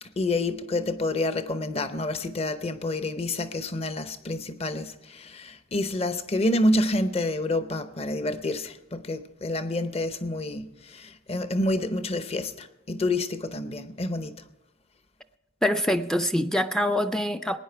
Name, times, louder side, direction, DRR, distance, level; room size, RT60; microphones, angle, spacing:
voice 1, 0.0-14.4, left 1 dB, 35° left, 0.7 m, -28 dB
voice 2, 15.6-17.6, left 1 dB, 5° left, 0.3 m, -25 dB
19.5 x 9.7 x 4.5 m
head